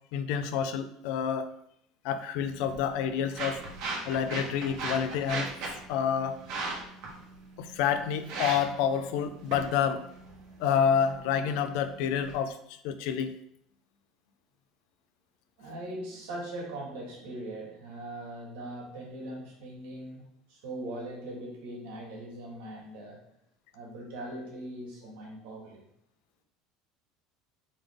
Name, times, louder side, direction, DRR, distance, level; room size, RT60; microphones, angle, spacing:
voice 1, 0.1-1.5 2.0-3.6 4.1-5.5 5.9-6.4 7.6-10.0 10.6-13.3, left 8 dB, 70° left, 10 dB, 0.4 m, -28 dB
sound 1, 2.4-12.4, right 3 dB, 60° right, 1.2 m, -39 dB
voice 2, 15.6-20.2 20.5-23.2 23.7-25.8, right 1 dB, 90° right, -3 dB, 1.7 m, -40 dB
3.9 x 3.3 x 3.5 m, 0.73 s
cardioid pair, 145°, 0 cm